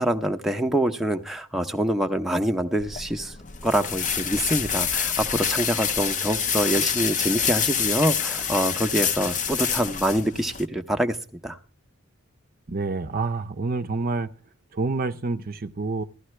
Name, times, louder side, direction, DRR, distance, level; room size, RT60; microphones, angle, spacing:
voice 1, 0.0-3.3 3.6-11.2 11.4-11.6, right 1 dB, ahead, 0.7 m, -25 dB
sound 1, 2.8-10.7, left 7 dB, 35° left, 0.7 m, -27 dB
voice 2, 12.7-14.3 14.7-16.0, right 3 dB, 40° right, 0.6 m, -27 dB
15.5 x 13.0 x 3.2 m
head